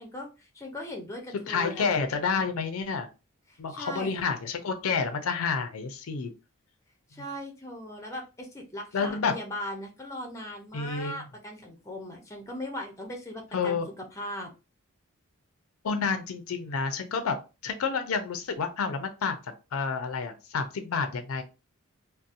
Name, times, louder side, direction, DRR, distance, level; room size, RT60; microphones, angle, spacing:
voice 1, 0.0-2.0 3.5-4.2 7.1-14.5, left 1 dB, 15° left, 2 dB, 0.5 m, -39 dB
voice 2, 1.5-3.1 3.6-6.3 7.2-7.3 8.9-9.4 10.7-11.2 13.5-13.9 15.8-19.4 19.7-21.4, left 5 dB, 85° left, 7 dB, 0.5 m, -29 dB
2.7 x 2.0 x 2.4 m, 0.30 s
head